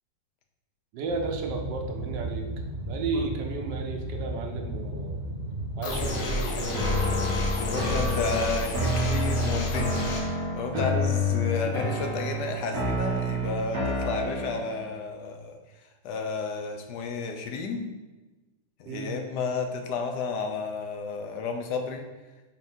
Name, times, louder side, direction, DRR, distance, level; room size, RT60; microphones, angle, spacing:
voice 1, 0.9-2.5 2.9-5.2 5.8-7.2 10.7-10.9 11.6-11.7 18.8-19.2, right 4 dB, 85° right, 3 dB, 1.4 m, -33 dB
Boat Water vehicle, 1.1-6.1, right 1 dB, 30° right, 1.3 m, -35 dB
sound 1, 5.8-10.2, left 2 dB, 90° left, 1.6 m, -31 dB
sound 2, 6.7-14.8, left 1 dB, 50° right, 1.7 m, -28 dB
voice 2, 7.5-10.3 10.6-15.6 16.0-17.9 18.8-22.1, left 4 dB, 70° left, 4 dB, 1.3 m, -32 dB
5.8 x 4.0 x 4.3 m, 1.2 s
omnidirectional pair, 1.9 m